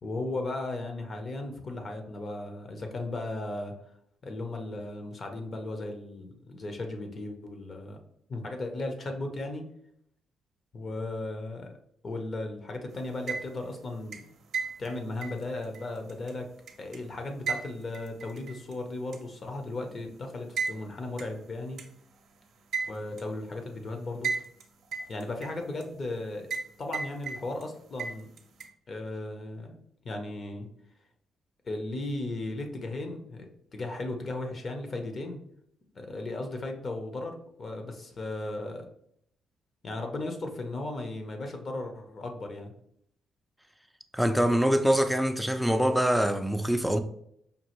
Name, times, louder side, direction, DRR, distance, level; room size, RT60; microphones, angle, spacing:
voice 1, 0.0-3.7 4.2-8.0 8.3-9.7 10.7-11.7 12.0-14.2 14.8-16.5 16.8-21.8 22.9-24.3 25.1-26.5 26.8-28.3 28.9-29.8 30.0-30.7 31.6-35.4 35.9-38.9 39.8-42.7, left 2 dB, 40° left, 0.8 m, -36 dB
sound 1, 13.1-13.7 14.1-17.0 17.5-18.7 19.1-19.2 20.6-20.8 21.2-21.3 21.8-21.9 22.7-23.3 24.2-24.6 24.9-25.8 26.5-26.7 26.9-27.7 28.0-28.7, right 5 dB, 65° right, 0.6 m, -34 dB
voice 2, 44.1-47.0, equal, ahead, 0.4 m, -24 dB
5.3 x 2.5 x 3.0 m
cardioid pair, 90°, 0 cm